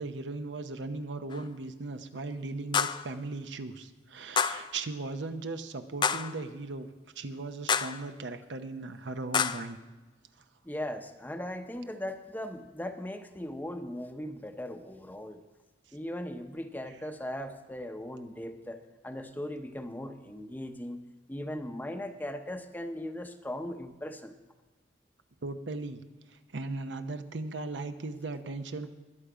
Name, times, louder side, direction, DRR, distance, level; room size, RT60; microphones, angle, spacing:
voice 1, 0.0-6.9 7.2-9.8 16.9-17.1 25.4-26.0 26.3-28.9, right 3 dB, 80° right, 8 dB, 0.8 m, -38 dB
sound 1, 1.3-1.4 2.7-3.1 4.4-4.7 6.0-6.4 7.7-8.0 9.3-9.7, left 7 dB, 25° left, 0.3 m, -28 dB
voice 2, 10.6-15.4 15.9-21.0 21.3-24.3, left 1 dB, 10° left, 7 dB, 0.7 m, -38 dB
21.0 x 7.0 x 5.0 m, 1.3 s
head